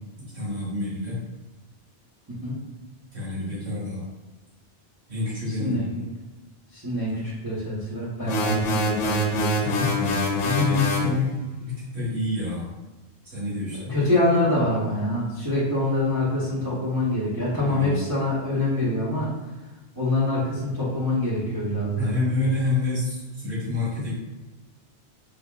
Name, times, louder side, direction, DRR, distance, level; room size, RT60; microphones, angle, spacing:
voice 1, 0.2-1.2 3.1-4.0 5.1-5.9 8.2-8.3 9.6-11.3 11.6-12.7 13.2-13.9 17.7-17.9 21.7-24.1, left 3 dB, 65° right, -9 dB, 1.9 m, -27 dB
voice 2, 2.3-2.6 5.5-5.9 6.7-9.6 13.7-19.3 19.9-22.1, left 1 dB, 20° right, -9 dB, 0.9 m, -25 dB
sound 1, 8.3-11.1, equal, 85° left, 0.9 m, -25 dB
4.9 x 2.7 x 2.4 m, 1.1 s
omnidirectional pair, 1.2 m